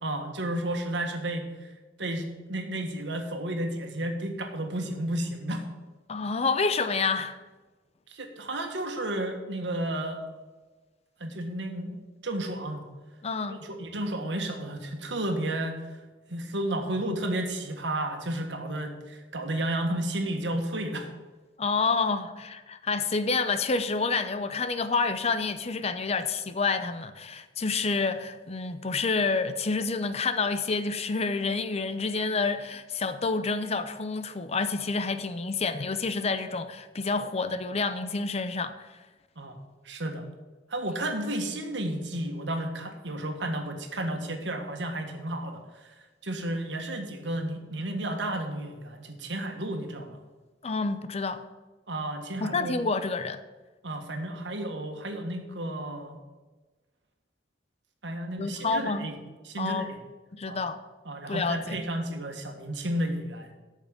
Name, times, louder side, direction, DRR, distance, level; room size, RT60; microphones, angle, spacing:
voice 1, 0.0-1.7 2.0-5.6 8.1-10.2 11.2-12.0 12.2-12.8 13.5-15.8 16.3-21.1 39.4-40.3 40.7-45.9 46.2-50.2 51.9-52.7 53.8-56.2 58.0-59.1 59.4-60.0 60.5-60.6 61.0-63.5, right 1 dB, 80° right, 1.6 m, -32 dB
voice 2, 6.1-7.4 13.2-13.6 21.6-38.9 50.6-51.4 52.4-53.4 58.4-59.1 59.6-59.9 60.3-60.8 61.3-61.8, left 4 dB, 35° left, 0.6 m, -28 dB
8.7 x 6.5 x 8.1 m
head